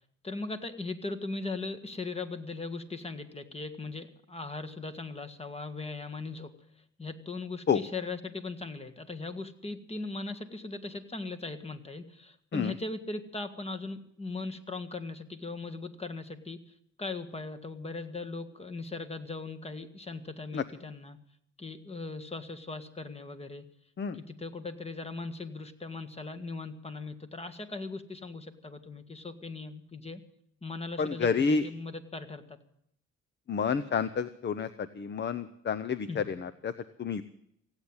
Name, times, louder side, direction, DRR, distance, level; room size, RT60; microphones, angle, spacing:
voice 1, 0.2-6.5 7.0-16.6 17.0-21.2 21.6-23.7 24.1-30.2 30.6-32.6 36.1-36.2, left 3 dB, 20° left, 8 dB, 1.8 m, -39 dB
voice 2, 31.0-31.6 33.5-36.7 37.0-37.2, left 6 dB, 35° left, 13 dB, 0.8 m, -29 dB
16.5 x 8.9 x 9.7 m, 0.71 s
cardioid pair, 90°, 30 cm